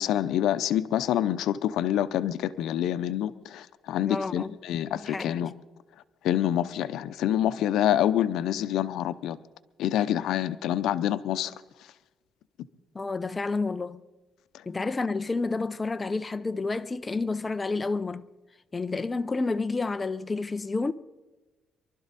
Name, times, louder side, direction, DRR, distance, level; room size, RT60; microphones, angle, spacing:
voice 1, 0.0-5.5 6.2-9.4 9.8-11.5, left 11 dB, 85° left, 0.6 m, -27 dB
voice 2, 4.0-4.5 4.9-5.5 12.9-14.0 14.7-18.3 18.7-20.9, left 3 dB, 20° left, 0.5 m, -30 dB
24.0 x 12.5 x 4.1 m
cardioid pair, 120°, 0 cm